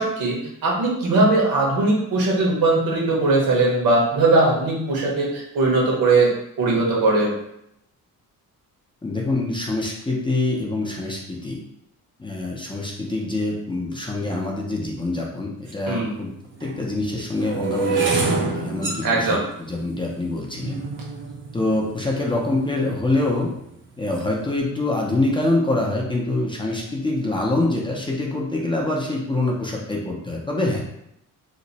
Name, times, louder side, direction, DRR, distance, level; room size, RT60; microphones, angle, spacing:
voice 1, 0.0-6.3 6.6-7.3 15.9-16.1 19.0-19.4, right 2 dB, 80° right, -3 dB, 1.2 m, -20 dB
voice 2, 9.0-11.6 12.2-16.3 16.6-19.4 19.7-20.8 21.5-23.5 24.0-30.8, left 2 dB, 15° left, -2 dB, 0.5 m, -25 dB
sound 1, 15.7-15.8 16.5-22.7 23.3-23.7 24.0-24.4, right 4 dB, 35° right, 0.5 m, -28 dB
2.9 x 2.1 x 4.0 m, 0.77 s
cardioid pair, 130°, 35 cm